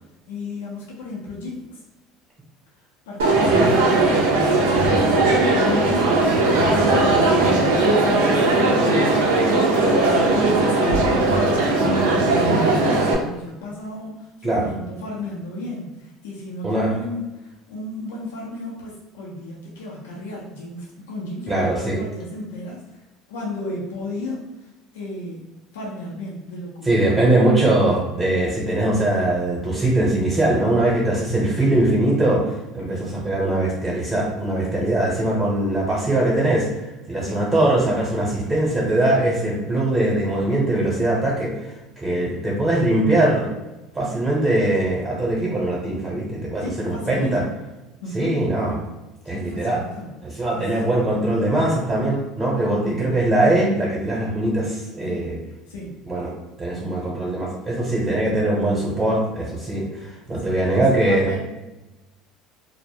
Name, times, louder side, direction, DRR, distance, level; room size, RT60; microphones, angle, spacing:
voice 1, 0.3-1.8 3.1-11.1 11.5-22.8 23.3-24.7 24.9-25.4 25.7-27.4 32.9-33.2 34.9-35.0 37.2-37.4 46.6-47.5 48.0-48.4 49.3-50.1 50.5-50.6 50.9-51.5 52.8-53.1 55.1-55.4 55.7-56.0 56.7-57.0 60.4-61.4, left 2 dB, 85° left, -4 dB, 0.5 m, -34 dB
Crowd, 3.2-13.1, right 2 dB, 85° right, 0.5 m, -18 dB
voice 2, 3.4-3.7 14.4-14.7 16.6-16.9 21.5-22.0 26.8-41.5 42.0-43.5 43.9-47.4 48.1-48.8 49.2-49.8 50.2-55.4 56.1-56.3 56.6-61.3, right 1 dB, 25° right, -5 dB, 0.8 m, -21 dB
2.0 x 2.0 x 3.4 m, 1.0 s
supercardioid pair, 85°, 0 cm